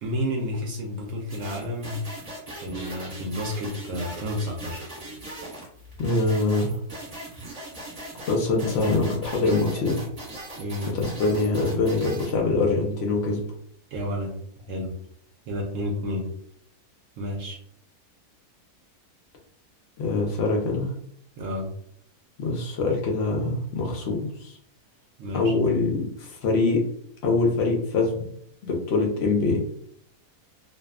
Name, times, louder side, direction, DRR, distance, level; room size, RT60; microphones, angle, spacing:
voice 1, 0.0-2.0 2.6-4.9 10.6-11.0 13.9-14.3 14.7-14.9 15.5-16.3 17.2-17.6 21.4-21.7 25.2-25.5, left 1 dB, 65° right, -1 dB, 0.8 m, -30 dB
sound 1, 1.3-12.4, right 1 dB, 30° right, 1.0 m, -39 dB
voice 2, 6.0-6.8 8.3-10.0 10.9-13.4 20.0-20.9 22.4-24.6 25.3-26.8 27.2-28.3 28.6-29.6, left 3 dB, 70° left, 0 dB, 0.6 m, -24 dB
2.6 x 2.3 x 2.3 m, 0.69 s
omnidirectional pair, 1.7 m